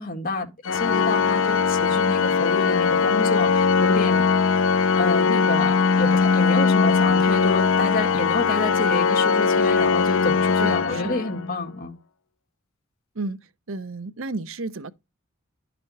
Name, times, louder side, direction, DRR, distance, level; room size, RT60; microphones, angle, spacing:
voice 1, 0.0-4.2 4.9-11.9, left 2 dB, 45° left, 1.9 m, -29 dB
Organ, 0.7-11.6, left 5 dB, 65° left, 0.5 m, -20 dB
voice 2, 10.6-11.2 13.2-13.4 13.7-14.9, right 3 dB, 70° right, 0.7 m, -32 dB
11.0 x 4.3 x 4.1 m
head